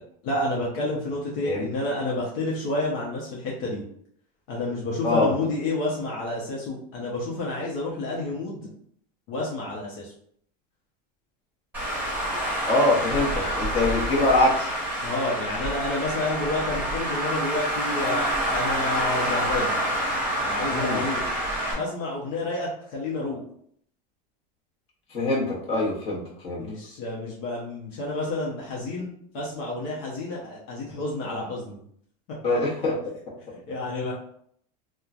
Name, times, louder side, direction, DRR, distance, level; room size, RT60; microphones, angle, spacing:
voice 1, 0.2-3.8 4.5-8.7 9.3-10.1 15.0-19.8 20.4-21.3 21.8-23.4 26.6-29.1 29.3-31.8 32.3-32.4 33.5-34.1, left 2 dB, 60° left, -4 dB, 0.8 m, -30 dB
Traffic noise roadway noise, 11.7-21.7, equal, 10° right, 1.0 m, -27 dB
voice 2, 12.6-14.7 20.7-21.0 25.1-26.6 32.4-33.1, left 2 dB, 30° left, -5 dB, 1.0 m, -24 dB
3.0 x 2.1 x 2.4 m, 0.66 s
supercardioid pair, 145°, 21 cm